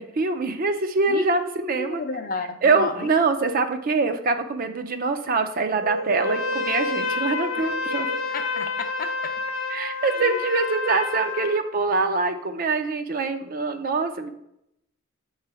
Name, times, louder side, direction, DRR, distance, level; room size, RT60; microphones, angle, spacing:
voice 1, 0.0-2.0 2.6-8.1 9.7-14.3, right 4 dB, 45° right, 8 dB, 0.5 m, -24 dB
voice 2, 1.8-3.1 8.3-9.3 10.3-10.4, left 4 dB, 45° left, 7 dB, 0.5 m, -31 dB
sound 1, 5.6-10.2, equal, 65° right, 1.0 m, -32 dB
Trumpet, 6.2-11.6, left 4 dB, 85° left, 0.8 m, -29 dB
7.4 x 3.2 x 4.7 m, 0.79 s
head